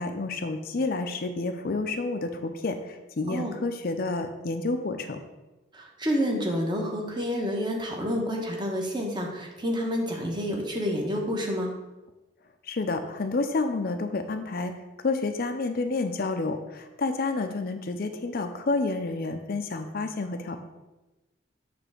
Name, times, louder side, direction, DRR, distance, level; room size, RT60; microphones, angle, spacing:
voice 1, 0.0-5.2 12.6-14.7 15.0-20.6, left 3 dB, 50° left, 7 dB, 0.5 m, -29 dB
voice 2, 5.7-11.7, equal, 25° right, 0 dB, 1.0 m, -29 dB
7.0 x 3.3 x 6.1 m, 1.1 s
head